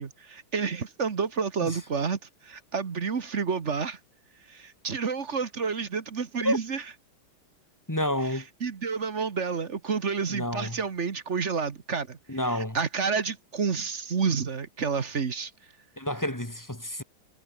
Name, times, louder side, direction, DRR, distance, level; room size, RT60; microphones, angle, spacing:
voice 1, 0.0-4.0 4.5-6.8 8.3-12.2 12.4-15.5, right 5 dB, 40° right, 1.4 m, -30 dB
voice 2, 7.9-8.5 10.3-10.8 12.3-12.8 16.0-17.0, left 1 dB, 10° left, 2.2 m, -29 dB
omnidirectional pair, 2.3 m